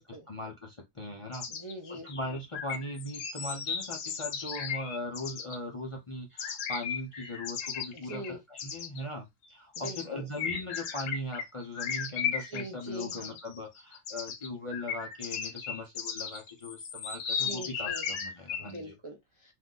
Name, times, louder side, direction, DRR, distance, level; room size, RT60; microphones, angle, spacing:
voice 1, 0.3-1.5 1.9-18.9, left 1 dB, 40° left, 0.5 m, -39 dB
sound 1, 1.3-5.6 6.4-8.3 8.6-9.0 9.7-10.1 10.4-18.8, left 7 dB, 75° left, 1.0 m, -36 dB
voice 2, 1.5-2.1 7.9-8.4 9.8-10.3 12.5-13.4 17.4-18.1 18.6-19.5, right 1 dB, 45° right, 0.4 m, -42 dB
2.6 x 2.3 x 3.7 m
omnidirectional pair, 1.3 m